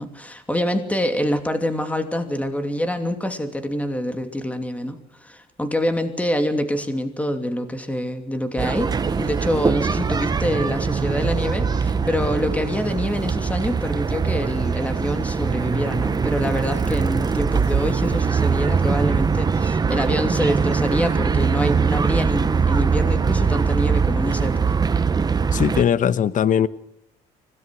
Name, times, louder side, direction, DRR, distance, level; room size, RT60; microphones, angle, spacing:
voice 1, 0.0-8.9 9.2-24.8, equal, 10° left, 2.8 m, -26 dB
sound 1, 8.6-25.8, right 5 dB, 25° right, 1.0 m, -22 dB
sound 2, 8.9-13.9, right 11 dB, 75° right, 1.7 m, -40 dB
voice 2, 25.5-26.7, left 9 dB, 50° left, 1.1 m, -19 dB
25.5 x 18.0 x 6.4 m
cardioid pair, 110°, 17 cm